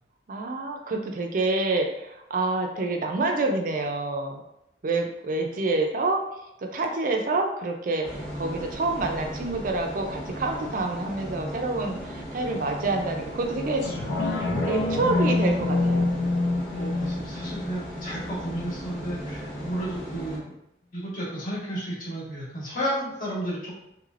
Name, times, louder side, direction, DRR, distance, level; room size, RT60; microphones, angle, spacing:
voice 1, 0.3-4.4 4.8-6.2 6.6-13.8 14.7-16.1, right 2 dB, 45° right, 3 dB, 0.4 m, -27 dB
sound 1, 8.0-20.4, equal, 5° left, 0.8 m, -37 dB
sound 2, 13.8-18.8 19.3-19.4, left 2 dB, 80° left, 0.7 m, -26 dB
voice 2, 16.7-20.5 20.9-23.8, right 1 dB, 45° left, -6 dB, 1.2 m, -32 dB
3.2 x 3.1 x 2.4 m, 0.84 s
head